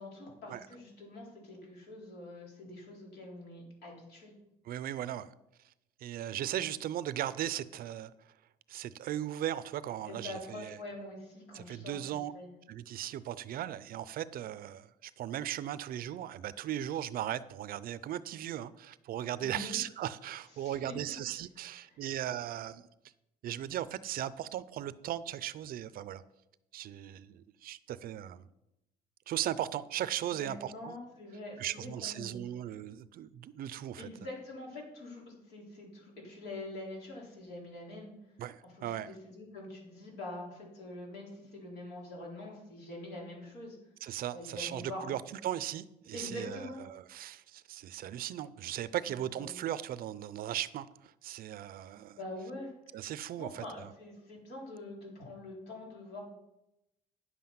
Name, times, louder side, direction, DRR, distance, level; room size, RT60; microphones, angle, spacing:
voice 1, 0.0-4.3 10.0-12.5 19.4-19.8 20.6-21.2 21.8-22.0 30.3-32.4 34.0-38.1 38.7-43.8 44.3-45.1 46.1-46.8 49.3-49.6 52.2-52.7 53.4-56.2, left 2 dB, 75° left, -2 dB, 4.0 m, -45 dB
voice 2, 4.6-5.3 6.0-8.1 8.7-10.8 11.5-12.3 12.7-22.9 23.4-26.2 26.7-28.5 29.3-31.0 31.6-34.1 38.4-39.1 44.0-52.2 52.9-53.9, right 12 dB, 60° right, 17 dB, 0.5 m, -37 dB
9.9 x 7.6 x 5.7 m, 0.90 s
cardioid pair, 110°, 17 cm